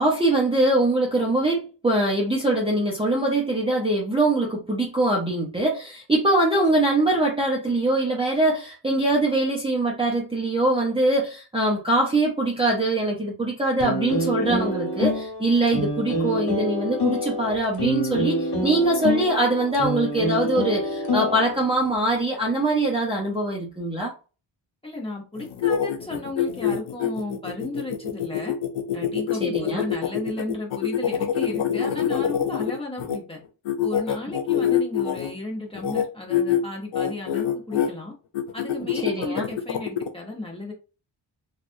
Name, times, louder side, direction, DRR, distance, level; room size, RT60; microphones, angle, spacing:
voice 1, 0.0-24.1 29.4-29.8 39.0-39.5, right 2 dB, 10° right, 0.7 m, -23 dB
sound 1, 13.8-21.9, left 1 dB, 60° left, 1.2 m, -27 dB
voice 2, 24.8-28.5 28.9-33.4 33.8-38.1 38.5-40.7, left 2 dB, 10° left, 1.0 m, -34 dB
sound 2, 25.4-33.2 33.6-35.3 35.7-36.0 36.3-36.6 36.9-37.9 38.3-40.1, left 9 dB, 85° left, 0.7 m, -25 dB
3.3 x 2.3 x 2.6 m
wide cardioid pair, 115°, 46 cm